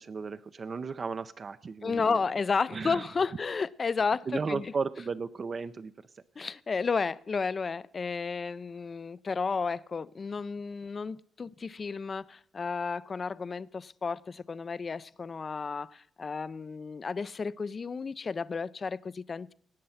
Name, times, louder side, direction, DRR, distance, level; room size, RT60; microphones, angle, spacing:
voice 1, 0.0-2.2 2.7-3.1 4.3-6.2, right 5 dB, 40° right, 0.6 m, -35 dB
voice 2, 1.8-4.7 6.4-19.5, left 5 dB, 35° left, 0.5 m, -32 dB
18.0 x 7.6 x 5.7 m
cardioid pair, 90°, 0 cm